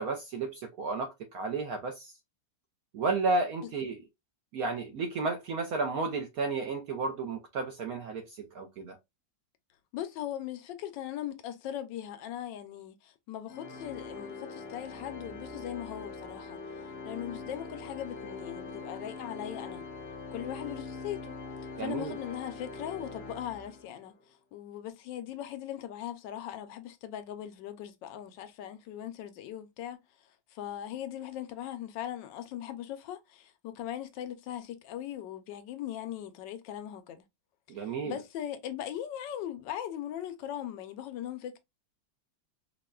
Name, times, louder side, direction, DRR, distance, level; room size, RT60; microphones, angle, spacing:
voice 1, 0.0-2.1 2.9-4.0 4.5-9.0 21.8-22.1 37.7-38.2, right 3 dB, 75° right, 0.8 m, -32 dB
voice 2, 9.9-16.6 17.0-19.8 20.3-21.4 21.8-37.2 37.7-41.6, left 11 dB, 80° left, 1.2 m, -39 dB
Organ, 13.5-24.1, left 4 dB, 50° left, 0.7 m, -43 dB
4.7 x 2.2 x 2.2 m
omnidirectional pair, 2.0 m